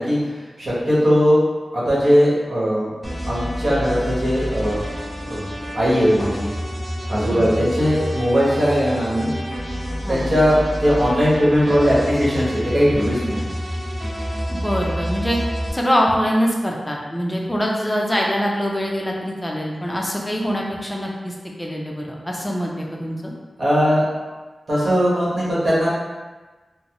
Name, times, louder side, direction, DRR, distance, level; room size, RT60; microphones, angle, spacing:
voice 1, 0.0-1.4 1.7-2.9 3.3-4.9 5.2-5.5 5.7-6.5 7.1-9.3 10.1-13.5 23.6-24.0 24.7-25.9, equal, 55° right, -8 dB, 1.2 m, -19 dB
sound 1, 3.0-15.7, equal, 10° right, 1.0 m, -28 dB
voice 2, 14.5-15.4 15.7-23.3, equal, 15° left, -2 dB, 0.5 m, -24 dB
3.9 x 2.0 x 2.9 m, 1.3 s
wide cardioid pair, 120°, 0 cm